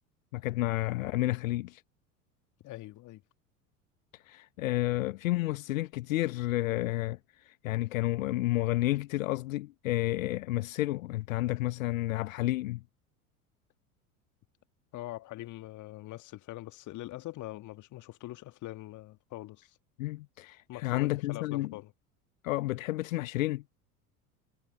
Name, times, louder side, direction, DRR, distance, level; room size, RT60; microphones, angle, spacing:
voice 1, 0.3-1.8 4.1-12.8 20.0-21.7 22.4-23.6, left 18 dB, 60° left, 1.3 m, -31 dB
voice 2, 2.6-3.2 14.9-19.8 20.7-21.9, left 17 dB, 40° left, 2.0 m, -43 dB
figure-of-eight pair, 70°, 45 cm